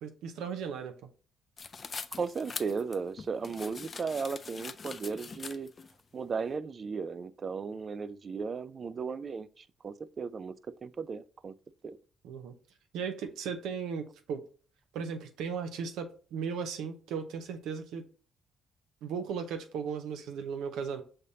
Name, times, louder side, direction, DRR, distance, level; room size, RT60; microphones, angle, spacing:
voice 1, 0.0-1.1 12.2-12.5 12.9-14.4 14.9-18.0 19.0-21.0, right 6 dB, 90° right, 0.6 m, -36 dB
sound 1, 1.6-5.9, left 5 dB, 40° left, 0.3 m, -43 dB
voice 2, 2.2-5.7 6.1-10.5 10.8-11.5 11.8-12.0, right 5 dB, 40° right, 0.3 m, -36 dB
5.5 x 3.3 x 2.7 m
cardioid pair, 90°, 0 cm